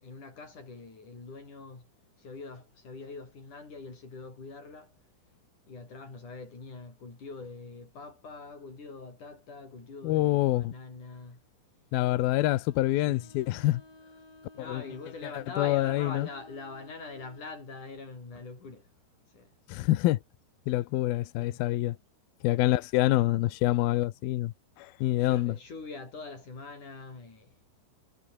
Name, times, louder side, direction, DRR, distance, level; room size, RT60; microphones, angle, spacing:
voice 1, 0.0-1.9 2.2-4.9 5.7-11.4 13.0-13.3 14.5-18.8 19.3-19.5 21.4-21.6 25.2-27.5, left 3 dB, 40° left, 9.0 m, -43 dB
voice 2, 10.0-10.7 11.9-13.8 14.6-14.8 15.3-16.3 19.7-20.2 20.7-22.0 22.4-25.6, left 16 dB, 85° left, 2.1 m, -26 dB
Bowed string instrument, 12.6-17.6, left 2 dB, 20° left, 7.2 m, -54 dB
omnidirectional pair, 5.8 m